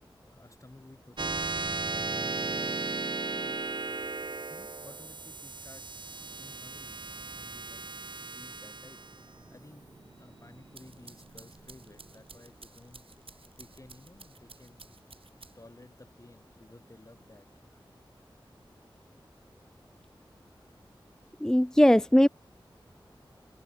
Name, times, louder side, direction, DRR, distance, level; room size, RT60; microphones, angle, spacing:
voice 1, 0.0-3.6 4.5-5.9 6.3-7.0 7.4-7.9 8.3-9.0 9.5-13.1 13.6-15.0 15.5-17.8, left 2 dB, 35° left, 7.6 m, -54 dB
sound 1, 1.2-12.0, right 3 dB, 60° right, 1.1 m, -36 dB
sound 2, 10.5-15.8, right 4 dB, 90° right, 6.1 m, -54 dB
voice 2, 21.4-22.3, equal, 5° left, 0.4 m, -20 dB
open air
wide cardioid pair, 70°, 9 cm